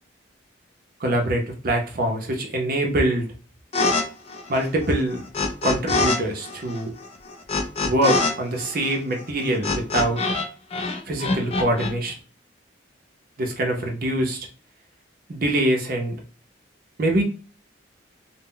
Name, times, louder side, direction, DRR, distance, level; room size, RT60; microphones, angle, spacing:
voice 1, 1.0-3.3 4.5-5.3 5.6-6.9 7.8-10.2 11.1-12.1 13.4-14.5 15.3-16.2 17.0-17.2, right 1 dB, 45° right, 2 dB, 0.5 m, -24 dB
sound 1, 3.7-4.0 4.3-6.2 6.4-10.5 10.7-11.9, left 3 dB, 30° left, 0.3 m, -24 dB
2.0 x 2.0 x 3.7 m, 0.35 s
head